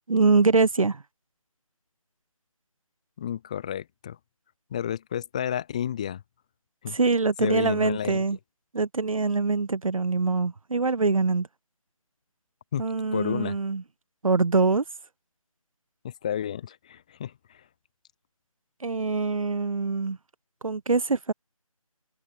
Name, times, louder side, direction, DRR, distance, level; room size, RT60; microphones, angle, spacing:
voice 1, 0.1-1.0 6.9-8.4 8.7-11.5 12.8-13.8 14.2-14.8 18.8-20.2 20.6-21.3, right 4 dB, 70° right, 0.7 m, -24 dB
voice 2, 3.2-4.2 4.7-6.2 6.8-7.0 7.4-8.2 12.7-12.8 13.1-13.6 16.0-17.3, left 9 dB, 10° left, 0.8 m, -31 dB
figure-of-eight pair, 160°, 18 cm